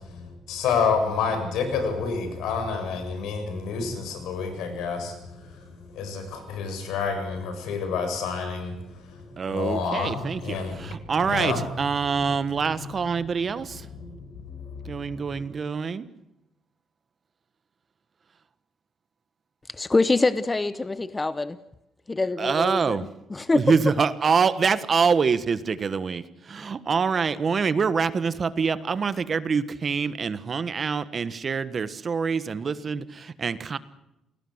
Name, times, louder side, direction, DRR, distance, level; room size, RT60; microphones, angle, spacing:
voice 1, 0.1-9.2 9.5-10.9 11.2-11.6 12.2-12.3 12.8-12.9 14.0-14.2 14.6-15.3, left 5 dB, 85° left, 7.4 m, -29 dB
voice 2, 9.4-13.9 14.8-16.0 22.4-23.1 23.5-33.8, right 5 dB, 35° right, 1.3 m, -25 dB
voice 3, 19.8-21.6 22.1-23.6, left 3 dB, 15° left, 0.9 m, -25 dB
28.5 x 19.0 x 8.0 m
cardioid pair, 130°, 0 cm